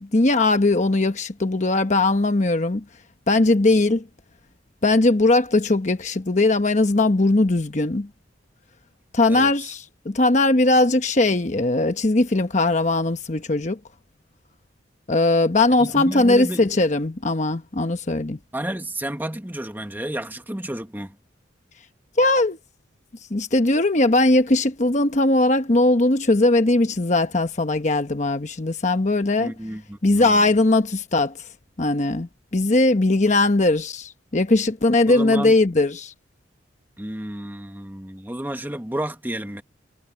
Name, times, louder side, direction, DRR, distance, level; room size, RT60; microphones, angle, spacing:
voice 1, 0.0-2.8 3.3-4.0 4.8-8.1 9.1-13.8 15.1-18.4 22.2-22.6 23.3-29.5 30.0-31.3 31.8-36.1, left 2 dB, 40° left, 1.0 m, -19 dB
voice 2, 15.8-16.6 18.5-21.2 29.4-30.5 35.1-35.5 37.0-39.6, right 1 dB, 10° right, 1.5 m, -31 dB
head